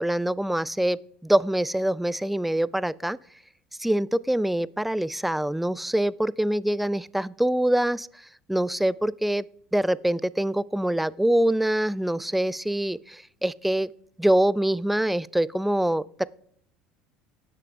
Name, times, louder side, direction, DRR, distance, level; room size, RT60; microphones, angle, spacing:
voice 1, 0.0-3.2 3.8-8.1 8.5-9.5 9.7-13.9 14.2-16.3, right 1 dB, 5° right, 19 dB, 0.4 m, -24 dB
18.0 x 6.6 x 2.5 m, 0.63 s
supercardioid pair, 85°, 3 cm